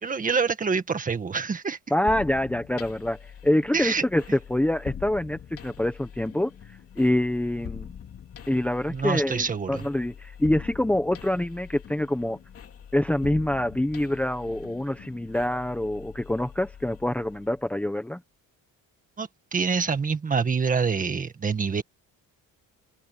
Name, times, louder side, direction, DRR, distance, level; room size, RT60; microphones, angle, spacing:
voice 1, 0.0-1.8 3.7-4.0 8.9-9.9 19.2-21.8, right 5 dB, 25° right, 1.7 m, -26 dB
voice 2, 1.9-6.5 7.0-7.9 8.5-12.4 12.9-18.2, left 1 dB, 5° left, 1.1 m, -26 dB
sound 1, 2.1-17.7, left 8 dB, 40° left, 3.2 m, -43 dB
open air
cardioid pair, 170°, 34 cm